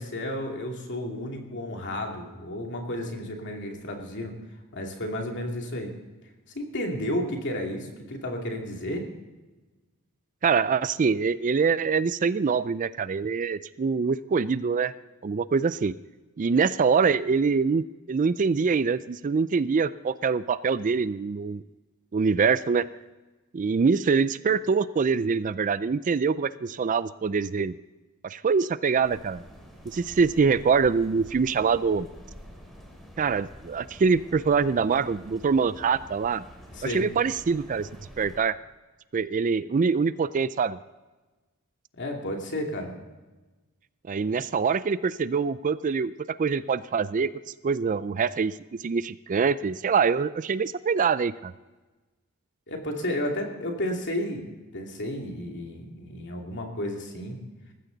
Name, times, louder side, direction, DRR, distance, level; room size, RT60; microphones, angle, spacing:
voice 1, 0.0-4.3 4.7-5.9 6.5-9.0 36.7-37.1 42.0-43.0 52.7-54.4 54.7-57.4, left 1 dB, 55° left, 2 dB, 2.6 m, -32 dB
voice 2, 10.4-14.9 15.2-15.9 16.4-21.6 22.1-22.9 23.5-27.8 28.2-29.4 29.9-32.1 33.2-36.4 36.8-37.9 38.2-38.6 39.1-40.8 44.1-46.1 46.4-47.3 47.6-51.5, right 5 dB, 35° right, 16 dB, 0.4 m, -24 dB
sound 1, 29.0-38.4, equal, ahead, 3.1 m, -47 dB
19.5 x 15.0 x 4.0 m, 1.2 s
head